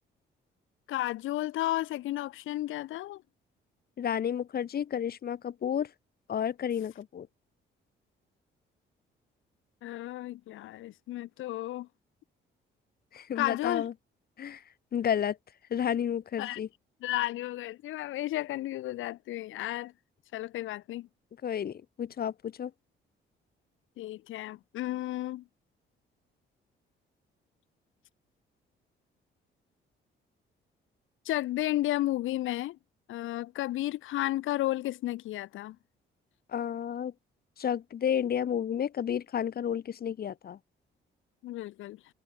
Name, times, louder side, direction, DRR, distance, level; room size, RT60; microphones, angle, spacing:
voice 1, 0.9-3.2 9.8-11.9 13.4-13.9 16.4-16.6 17.0-19.9 20.3-21.1 24.0-25.4 31.2-32.8 33.1-35.8 41.4-42.0, left 15 dB, 80° left, 1.0 m, -33 dB
voice 2, 4.0-5.9 6.3-7.3 13.1-13.9 14.4-14.6 14.9-15.4 15.7-16.7 21.4-22.7 36.5-37.1 37.6-40.6, left 9 dB, 50° left, 1.1 m, -31 dB
cardioid pair, 90°, 20 cm